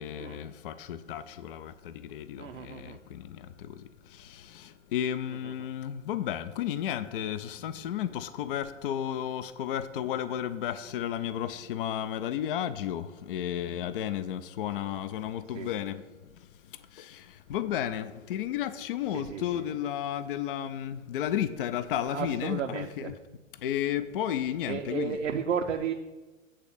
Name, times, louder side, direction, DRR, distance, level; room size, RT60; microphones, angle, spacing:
voice 1, 0.0-16.3 16.9-22.9 23.6-25.2, left 10 dB, 45° left, 0.5 m, -33 dB
voice 2, 2.4-3.0 5.3-5.7 15.5-15.7 19.1-19.6 22.0-23.1 24.6-25.9, right 7 dB, 65° right, 0.7 m, -34 dB
8.9 x 3.9 x 7.0 m
figure-of-eight pair, 105°, 39 cm